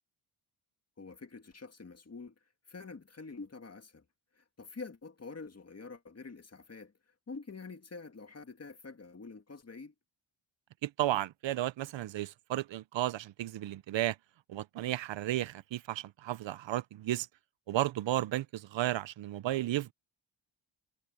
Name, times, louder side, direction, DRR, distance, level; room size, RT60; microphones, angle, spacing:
voice 1, 1.0-2.3 2.7-4.0 4.3-6.9 7.3-9.9, left 4 dB, 30° left, 2.1 m, -46 dB
voice 2, 10.8-14.2 14.5-17.3 17.7-19.9, right 14 dB, 70° right, 0.6 m, -33 dB
cardioid pair, 105°, 47 cm